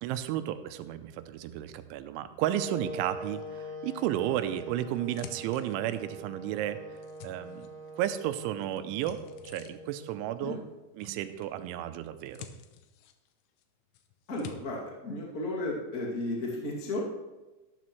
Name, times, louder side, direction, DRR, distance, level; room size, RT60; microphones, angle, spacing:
voice 1, 0.0-6.8 7.2-7.7 7.9-9.2 9.4-10.6 10.9-12.5, right 12 dB, 90° right, 10 dB, 3.1 m, -33 dB
Wind instrument woodwind instrument, 2.5-10.4, right 1 dB, 45° left, 5.8 m, -44 dB
sound 1, 4.4-6.2 6.7-8.1 8.4-10.1 11.0-11.6 11.9-13.6 13.9-14.6, left 9 dB, 90° left, 3.3 m, -49 dB
voice 2, 14.3-17.0, left 1 dB, 30° left, -4 dB, 1.8 m, -34 dB
13.0 x 12.5 x 3.2 m, 1.1 s
omnidirectional pair, 5.4 m